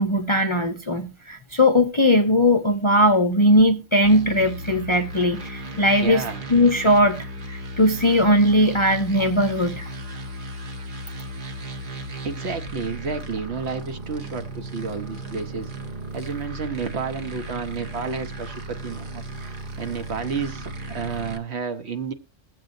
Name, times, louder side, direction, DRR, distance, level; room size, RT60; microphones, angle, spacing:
voice 1, 0.0-6.2 6.5-9.9, left 1 dB, 30° left, 0.6 m, -19 dB
sound 1, 4.0-21.4, right 1 dB, 45° right, 1.1 m, -35 dB
voice 2, 6.0-6.4 12.2-15.7 16.1-19.2 19.8-22.1, right 5 dB, 60° right, 1.1 m, -31 dB
21.0 x 7.6 x 2.6 m
omnidirectional pair, 1.3 m